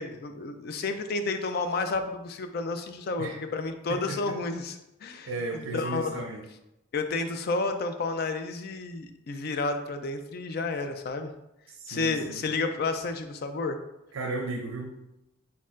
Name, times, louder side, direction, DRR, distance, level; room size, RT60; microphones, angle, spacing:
voice 1, 0.0-6.2 6.9-11.3 11.9-13.8, left 3 dB, 50° left, 8 dB, 0.3 m, -31 dB
voice 2, 3.9-4.4 5.3-6.4 11.7-12.4 14.1-15.1, right 3 dB, 85° right, 2 dB, 0.5 m, -35 dB
4.3 x 4.0 x 2.4 m, 0.90 s
head